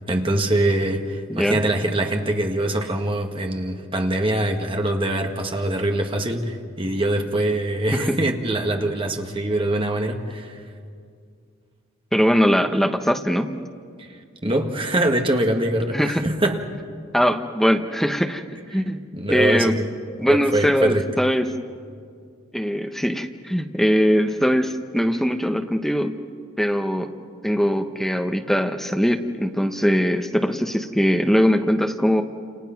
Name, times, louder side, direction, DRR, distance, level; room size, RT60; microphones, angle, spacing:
voice 1, 0.1-10.6 14.0-14.1 14.4-16.6 18.7-18.8 19.1-19.9 20.3-21.1, right 1 dB, 25° right, 1.7 m, -23 dB
voice 2, 12.1-13.5 15.9-16.2 17.1-18.4 18.7-19.0 19.3-19.7 20.2-21.5 22.5-26.2 26.6-27.1 27.4-32.2, equal, ahead, 1.0 m, -21 dB
29.0 x 28.5 x 5.9 m
head